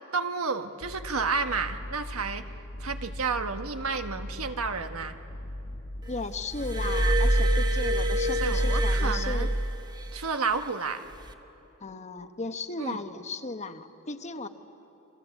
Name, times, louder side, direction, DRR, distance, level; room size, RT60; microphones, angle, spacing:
voice 1, 0.1-2.4 2.8-5.2 8.4-9.5 10.1-11.0 12.8-13.0, right 4 dB, 85° right, 7 dB, 1.3 m, -31 dB
sound 1, 0.8-7.9, left 1 dB, 50° left, 1.2 m, -40 dB
voice 2, 6.1-9.5 11.8-14.5, left 3 dB, 35° left, 8 dB, 1.1 m, -36 dB
Glass, 6.5-10.1 11.1-11.3, right 1 dB, 20° right, 1.1 m, -25 dB
29.0 x 24.5 x 8.2 m, 2.9 s
head